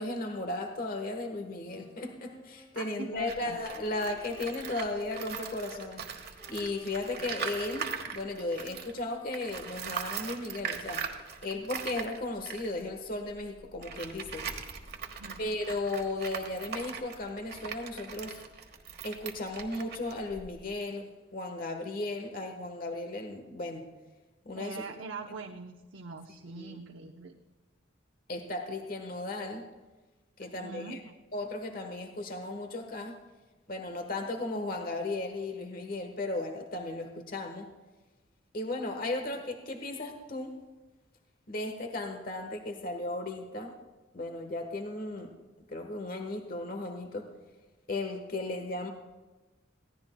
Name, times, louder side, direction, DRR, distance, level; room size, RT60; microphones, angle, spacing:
voice 1, 0.0-14.5 15.4-18.4 19.0-23.9 24.4-24.8 26.5-26.8 28.3-29.7 30.4-31.0 31.3-33.2 33.7-37.7 38.5-40.5 41.5-43.7 44.1-45.3 45.7-47.3 47.9-48.9, left 2 dB, 45° left, 5 dB, 1.2 m, -36 dB
Wind instrument woodwind instrument, 1.6-10.4, left 2 dB, 30° left, 4.5 m, -57 dB
voice 2, 2.8-3.6 15.0-15.4 24.5-27.4 30.4-31.1, right 4 dB, 80° right, 2 dB, 0.8 m, -43 dB
Tools, 3.2-9.0 9.3-20.8, right 6 dB, 55° right, 1.3 m, -41 dB
21.0 x 16.0 x 2.2 m, 1.2 s
head